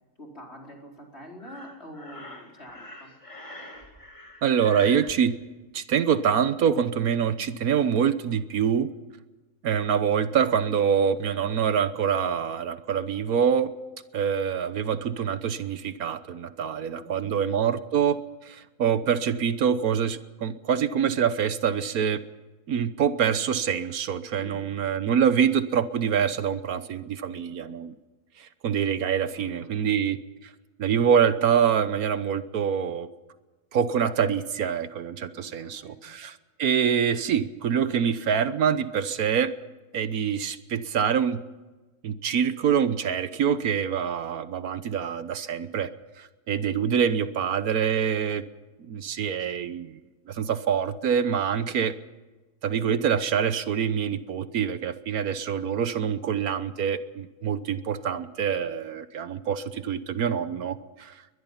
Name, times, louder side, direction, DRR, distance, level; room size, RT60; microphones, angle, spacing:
voice 1, 0.2-3.1 17.0-17.4 24.4-24.7 29.3-29.9 35.3-36.1, equal, 45° left, 0 dB, 5.0 m, -46 dB
Breathing, 1.4-5.1, left 1 dB, 20° left, 2.8 m, -43 dB
voice 2, 4.4-5.4 5.7-8.9 9.6-13.7 14.1-22.2 22.7-27.9 28.4-30.5 30.8-33.1 33.7-39.5 39.9-41.4 42.0-45.9 46.2-48.4 48.8-50.0 50.3-51.9 52.6-61.2, right 7 dB, 75° right, 13 dB, 1.4 m, -25 dB
22.0 x 21.0 x 5.7 m, 1.2 s
omnidirectional pair, 1.6 m